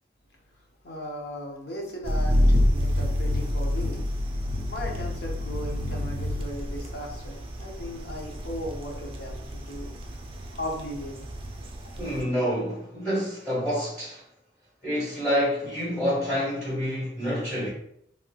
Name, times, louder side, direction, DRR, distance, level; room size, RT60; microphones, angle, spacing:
voice 1, 0.8-4.0 4.7-9.9 10.5-11.3, left 1 dB, 60° left, 0.7 m, -37 dB
sound 1, 2.0-12.2, left 1 dB, 30° right, 0.4 m, -28 dB
voice 2, 12.0-14.2 14.8-17.7, equal, 10° left, 1.2 m, -27 dB
3.0 x 2.9 x 2.2 m
head